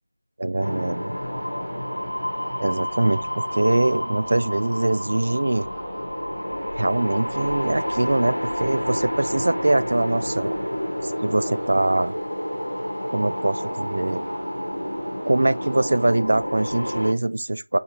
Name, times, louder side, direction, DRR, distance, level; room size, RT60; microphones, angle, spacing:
voice 1, 0.4-1.1 2.6-5.7 6.7-10.6 11.0-12.1 13.1-14.3 15.3-17.8, right 2 dB, 50° right, 0.4 m, -23 dB
sound 1, 0.6-17.1, equal, 90° left, 1.0 m, -29 dB
sound 2, 1.1-16.1, equal, ahead, 0.7 m, -44 dB
4.2 x 3.9 x 2.8 m
figure-of-eight pair, 170°, 0 cm